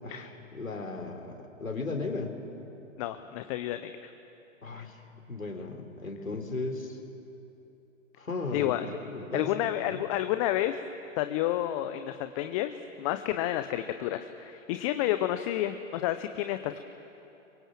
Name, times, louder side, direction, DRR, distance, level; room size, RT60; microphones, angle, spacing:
voice 1, 0.0-2.3 4.6-5.0 5.3-7.0 8.2-10.0, left 3 dB, 85° left, 4 dB, 3.6 m, -36 dB
voice 2, 3.0-4.1 8.5-8.9 9.3-10.8 11.2-16.9, left 13 dB, 25° left, 10 dB, 0.8 m, -30 dB
30.0 x 23.5 x 7.5 m, 2.9 s
figure-of-eight pair, 125°, 39 cm